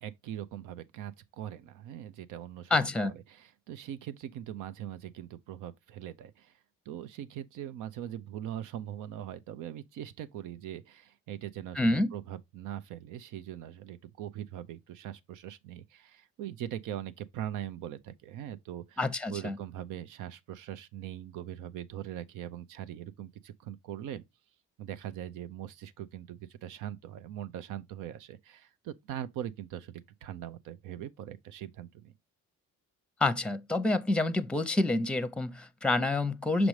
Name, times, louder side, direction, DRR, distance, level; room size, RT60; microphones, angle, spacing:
voice 1, 0.0-6.5 6.9-19.0 19.3-24.2 24.8-32.1, right 11 dB, 90° right, 0.6 m, -41 dB
voice 2, 2.7-3.1 11.8-12.1 19.0-19.6 33.2-36.7, left 2 dB, 5° left, 0.6 m, -28 dB
6.1 x 5.1 x 3.1 m
cardioid pair, 90°, 30 cm